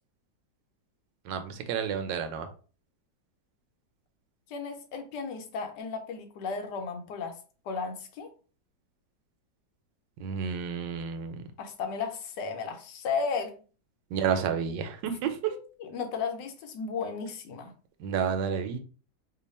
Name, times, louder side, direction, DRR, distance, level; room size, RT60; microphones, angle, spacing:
voice 1, 1.2-2.5 10.2-11.4 14.1-15.4 18.0-18.8, right 7 dB, 85° right, 8 dB, 1.3 m, -30 dB
voice 2, 4.5-7.4 7.7-8.3 11.6-13.5 15.5-17.7, left 5 dB, 75° left, 6 dB, 1.3 m, -34 dB
3.1 x 2.3 x 4.1 m, 0.38 s
omnidirectional pair, 1.9 m